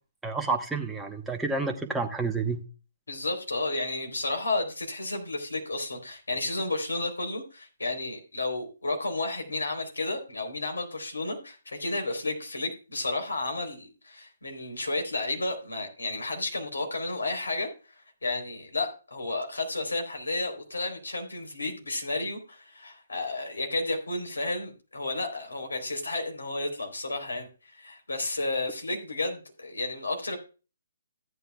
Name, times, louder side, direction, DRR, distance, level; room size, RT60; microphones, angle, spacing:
voice 1, 0.2-2.6, right 4 dB, 5° right, 3 dB, 1.1 m, -29 dB
voice 2, 3.1-30.4, left 2 dB, 85° left, 3 dB, 3.8 m, -32 dB
14.5 x 9.2 x 2.3 m, 0.33 s
figure-of-eight pair, 140°, 0 cm